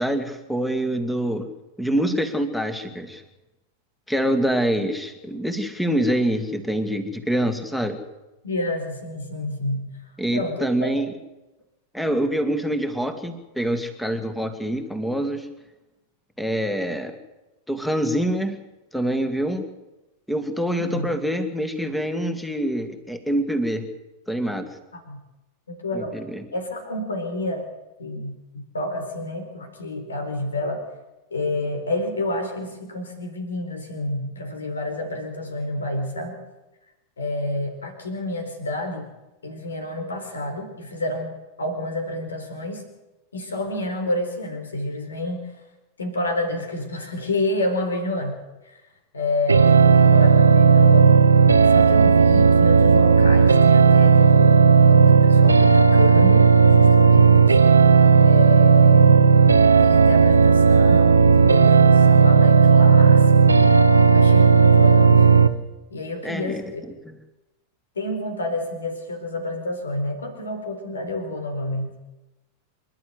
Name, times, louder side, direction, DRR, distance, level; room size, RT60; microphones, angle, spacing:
voice 1, 0.0-1.5 1.8-3.2 4.1-8.0 10.2-11.1 11.9-15.5 16.4-17.2 17.7-18.6 18.9-19.7 20.3-23.9 24.3-24.7 25.9-26.4 66.2-66.6, right 1 dB, 5° left, 8 dB, 2.3 m, -25 dB
voice 2, 8.4-9.9 10.3-10.9 20.8-21.1 24.9-25.2 25.7-26.2 26.5-27.7 28.0-30.8 31.3-36.4 37.2-39.1 39.4-42.8 43.3-45.6 46.0-48.4 48.6-48.8 49.1-51.2 51.7-57.6 58.2-59.4 59.8-63.7 64.1-65.3 65.9-66.8 67.9-71.9, left 1 dB, 70° left, 6 dB, 4.3 m, -29 dB
sound 1, 49.5-65.5, right 5 dB, 80° right, 1.0 m, -14 dB
27.0 x 12.0 x 8.1 m, 1.0 s
figure-of-eight pair, 90°, 0 cm